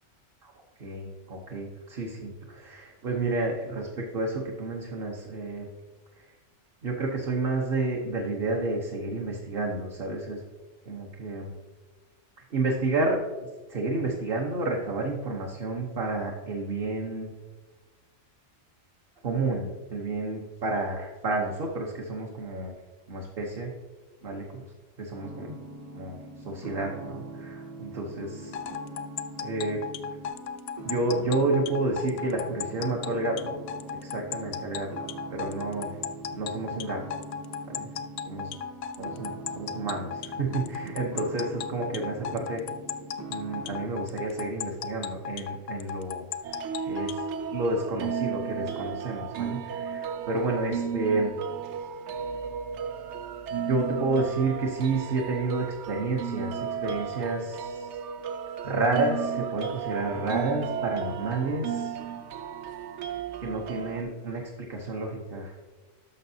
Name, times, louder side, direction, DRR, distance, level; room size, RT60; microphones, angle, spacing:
voice 1, 0.8-5.7 6.8-10.4 10.9-11.5 12.5-13.2 13.7-17.3 19.2-22.7 23.1-23.7 24.2-24.6 25.0-25.6 25.9-26.2 26.4-28.5 29.4-29.8 30.8-33.5 34.0-34.9 35.3-36.0 36.3-37.0 37.7-37.9 38.3-38.4 39.0-39.3 39.6-42.6 43.3-46.2 46.9-47.2 47.5-51.3 53.7-57.9 58.6-62.0 63.4-64.4 64.7-65.6, right 2 dB, 50° right, -1 dB, 1.1 m, -30 dB
sound 1, 25.2-43.9, right 2 dB, 20° right, 0.7 m, -42 dB
sound 2, 28.5-47.3, left 8 dB, 65° left, 0.7 m, -35 dB
sound 3, 46.4-64.0, right 7 dB, 70° right, 0.8 m, -34 dB
11.0 x 6.5 x 2.7 m, 1.3 s
omnidirectional pair, 1.3 m